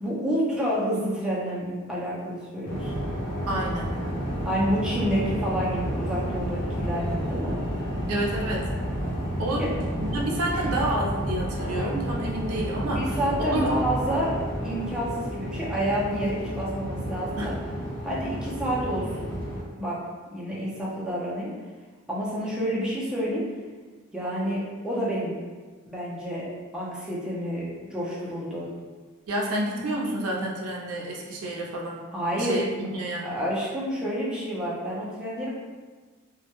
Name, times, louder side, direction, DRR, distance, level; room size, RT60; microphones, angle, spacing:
voice 1, 0.0-3.0 4.4-7.6 10.5-10.6 13.0-17.5 18.0-19.3 19.8-20.0 20.3-21.5 22.1-23.4 24.1-25.4 25.9-26.5 26.7-28.7 32.1-32.6 33.2-35.6, equal, 5° right, -7 dB, 0.4 m, -29 dB
sound 1, 2.6-19.6, equal, 55° left, 0.8 m, -31 dB
voice 2, 3.5-3.9 8.1-8.7 9.4-13.1 13.4-13.7 17.4-17.5 29.3-32.0 32.4-33.3, right 1 dB, 85° right, -2 dB, 0.5 m, -29 dB
2.2 x 2.0 x 2.9 m, 1.4 s
head